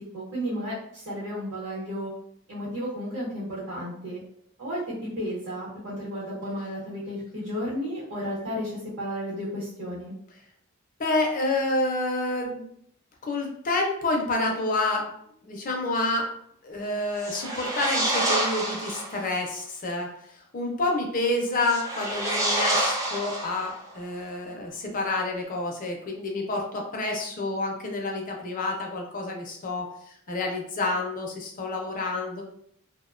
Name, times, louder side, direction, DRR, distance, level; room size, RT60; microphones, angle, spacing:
voice 1, 0.1-2.1 2.5-4.2 4.6-10.1, equal, 55° right, -9 dB, 0.9 m, -33 dB
voice 2, 11.0-12.7 13.2-15.1 15.4-16.3 16.6-32.4, left 2 dB, 40° left, 1 dB, 0.5 m, -28 dB
sound 1, 17.1-19.2 21.6-23.9, right 1 dB, 15° right, 0.4 m, -28 dB
2.5 x 2.1 x 2.4 m, 0.69 s
head